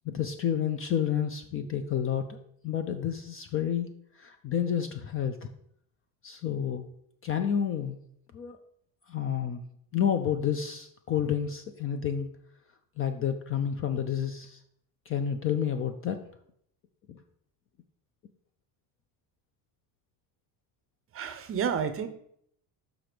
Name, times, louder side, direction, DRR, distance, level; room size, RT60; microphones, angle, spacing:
voice 1, 0.1-2.4 2.6-5.5 6.2-6.8 7.2-8.0 8.3-8.6 9.1-9.6 9.9-12.3 13.0-14.6 15.1-16.2 17.1-17.2, left 8 dB, 30° left, 8 dB, 0.4 m, -30 dB
voice 2, 21.1-22.1, right 7 dB, 30° right, 10 dB, 0.6 m, -30 dB
6.0 x 5.9 x 5.0 m, 0.69 s
cardioid pair, 150°, 45 cm